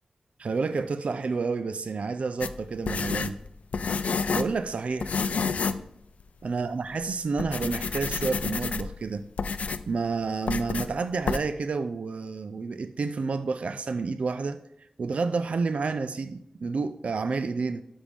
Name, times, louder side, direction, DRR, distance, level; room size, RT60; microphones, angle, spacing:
voice 1, 0.4-3.4 4.3-5.2 6.4-9.2 9.9-14.6 15.0-17.8, right 4 dB, 70° right, 0.4 m, -29 dB
sound 1, 2.4-4.6 5.0-5.9 6.2-6.3 6.9-7.1 7.4-9.0 9.4-9.9 10.5-10.9 11.3-11.4, left 5 dB, 90° left, 0.4 m, -29 dB
12.0 x 5.3 x 3.4 m
wide cardioid pair, 115°, 2 cm